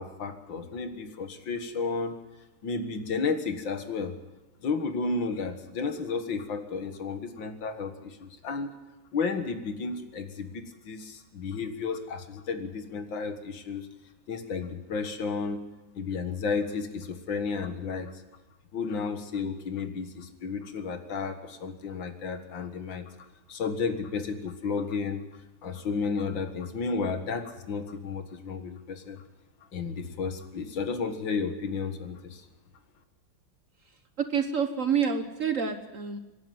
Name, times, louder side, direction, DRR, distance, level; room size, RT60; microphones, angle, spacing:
voice 1, 0.0-2.2 2.6-4.2 4.6-8.7 9.1-13.9 14.3-15.6 16.0-18.1 18.7-23.1 23.5-25.2 25.6-29.2 29.7-32.5, left 4 dB, 70° left, 8 dB, 2.3 m, -32 dB
voice 2, 34.2-36.2, right 7 dB, 45° right, 8 dB, 1.3 m, -28 dB
26.0 x 11.0 x 9.5 m, 1.1 s
omnidirectional pair, 2.2 m